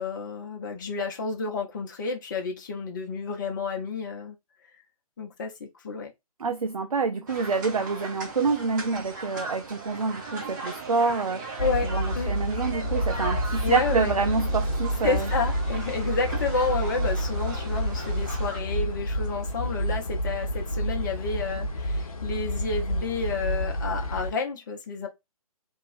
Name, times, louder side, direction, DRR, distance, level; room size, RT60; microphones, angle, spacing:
voice 1, 0.0-4.4 5.2-6.1 11.6-12.3 13.6-14.1 15.0-25.1, left 4 dB, 30° left, 0.6 m, -30 dB
voice 2, 6.4-11.4 11.8-15.3, right 4 dB, 70° right, 0.4 m, -27 dB
sound 1, 7.3-18.6, right 3 dB, 35° right, 0.9 m, -38 dB
sound 2, 11.6-24.3, equal, 70° left, 0.8 m, -29 dB
2.9 x 2.3 x 2.5 m
figure-of-eight pair, 135°, 19 cm